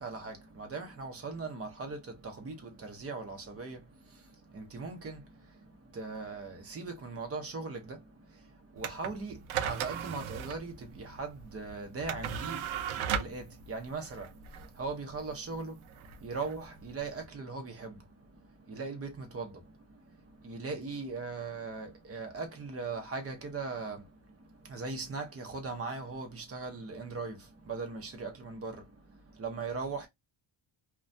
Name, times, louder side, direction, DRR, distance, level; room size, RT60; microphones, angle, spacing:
voice 1, 0.0-30.1, right 4 dB, 30° right, 0.7 m, -40 dB
sound 1, 8.8-17.3, right 8 dB, 85° right, 0.6 m, -38 dB
2.3 x 2.2 x 2.5 m
cardioid pair, 155°, 48 cm